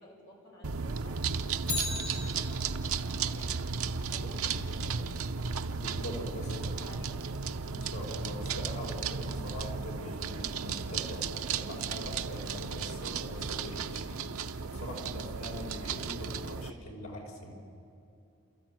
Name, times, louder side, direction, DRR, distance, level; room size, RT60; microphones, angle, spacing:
voice 1, 0.0-2.6 3.0-7.4, left 1 dB, 60° left, -2 dB, 5.1 m, -53 dB
sound 1, 0.6-16.7, right 5 dB, 90° right, 0.8 m, -35 dB
Bicycle, 1.6-3.0 11.3-11.4, left 3 dB, 35° left, 3.2 m, -37 dB
voice 2, 5.7-6.5 7.7-17.5, left 1 dB, 80° left, -1 dB, 5.3 m, -43 dB
29.5 x 14.0 x 9.1 m, 2.8 s
head